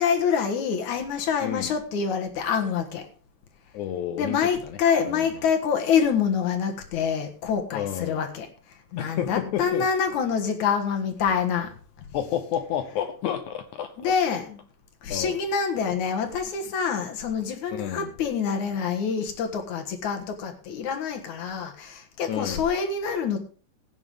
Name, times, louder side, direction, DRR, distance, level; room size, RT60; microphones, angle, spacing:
voice 1, 0.0-3.1 4.2-8.5 8.9-11.7 14.0-14.6 15.0-23.4, left 6 dB, 60° left, 5 dB, 2.7 m, -26 dB
voice 2, 1.4-1.7 3.7-4.8 5.1-5.3 7.7-8.3 9.0-9.9 12.1-14.1 15.1-15.4 17.7-18.1 22.3-22.7, left 10 dB, 75° left, 9 dB, 1.8 m, -31 dB
16.5 x 9.4 x 3.6 m, 0.40 s
omnidirectional pair, 4.2 m